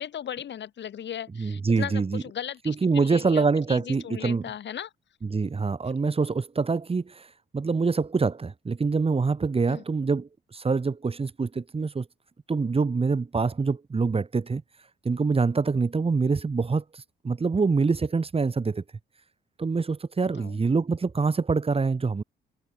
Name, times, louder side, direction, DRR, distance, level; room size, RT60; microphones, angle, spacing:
voice 1, 0.0-4.9 9.7-9.8 20.4-20.6, left 9 dB, 65° left, 6.7 m, -37 dB
voice 2, 1.4-2.2 2.7-4.4 5.2-7.3 7.5-12.1 12.5-14.6 15.0-18.8 19.6-22.2, right 4 dB, 30° right, 2.9 m, -25 dB
cardioid pair, 90°, 20 cm